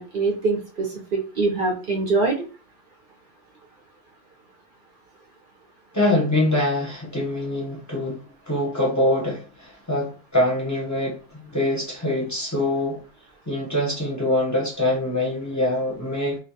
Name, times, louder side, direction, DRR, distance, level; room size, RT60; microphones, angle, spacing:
voice 1, 0.0-2.5, right 3 dB, 60° right, 0.6 m, -24 dB
voice 2, 5.9-13.0 13.5-16.4, left 1 dB, 20° left, 0.5 m, -24 dB
2.2 x 2.1 x 2.6 m
omnidirectional pair, 1.3 m